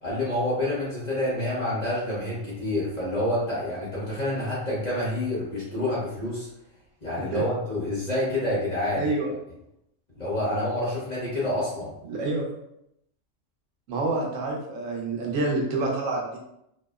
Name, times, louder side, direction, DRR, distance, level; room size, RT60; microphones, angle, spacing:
voice 1, 0.0-6.5 7.0-9.1 10.1-11.9, left 1 dB, 40° left, -8 dB, 0.9 m, -28 dB
voice 2, 8.9-9.3 12.1-12.5 13.9-16.4, right 2 dB, 85° right, -1 dB, 1.0 m, -27 dB
2.7 x 2.0 x 2.2 m, 0.79 s
omnidirectional pair, 1.3 m